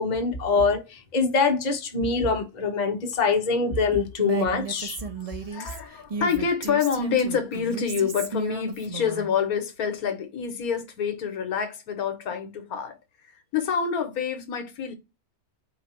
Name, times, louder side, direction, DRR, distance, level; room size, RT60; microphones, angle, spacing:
voice 1, 0.0-5.0, left 4 dB, 35° left, 1.0 m, -24 dB
Female speech woman speaking, 4.2-9.3, right 4 dB, 45° right, 0.4 m, -34 dB
voice 2, 5.2-13.0 13.5-14.9, left 7 dB, 75° left, 1.3 m, -27 dB
4.8 x 2.6 x 4.2 m
omnidirectional pair, 1.6 m